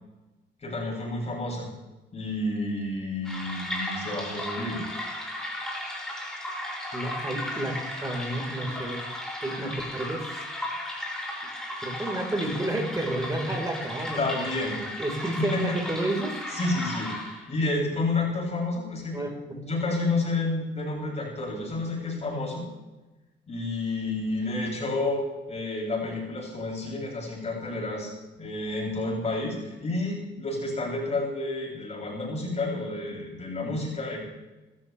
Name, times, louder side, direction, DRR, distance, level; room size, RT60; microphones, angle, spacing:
voice 1, 0.6-1.7 2.1-4.8 14.2-14.8 15.4-15.8 16.5-17.1 17.5-22.6 23.5-28.1 28.4-34.2, left 2 dB, 35° left, -3 dB, 7.6 m, -30 dB
sound 1, 3.2-17.6, left 1 dB, 5° left, 6.4 m, -35 dB
voice 2, 6.9-9.0 9.4-10.3 11.4-11.5 11.8-14.5 15.0-16.4 19.1-19.6, right 1 dB, 15° right, 2 dB, 4.5 m, -31 dB
26.5 x 14.0 x 3.4 m, 1.1 s
cardioid pair, 105°, 19 cm